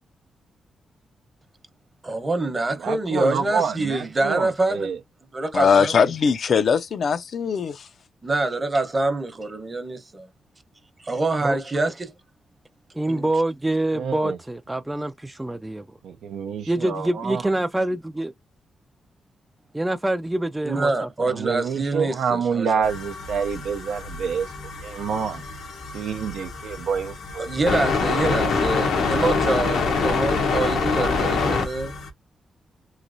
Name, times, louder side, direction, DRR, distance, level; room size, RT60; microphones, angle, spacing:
voice 1, 2.0-4.9 5.3-5.9 8.2-10.3 11.0-12.1 13.1-13.3 20.6-22.8 27.4-31.9, right 2 dB, 30° right, 0.9 m, -25 dB
voice 2, 2.8-5.0 13.9-14.4 16.0-17.4 21.3-24.5 24.8-25.4 25.9-27.7 28.1-28.5, right 6 dB, 85° right, 0.5 m, -27 dB
voice 3, 5.5-7.9, left 6 dB, 60° left, 0.5 m, -20 dB
voice 4, 12.9-15.8 16.7-18.3 19.7-21.4, right 1 dB, 10° right, 0.3 m, -26 dB
sound 1, 22.8-32.1, left 4 dB, 90° left, 0.9 m, -25 dB
3.2 x 2.8 x 2.6 m
cardioid pair, 75°, 0 cm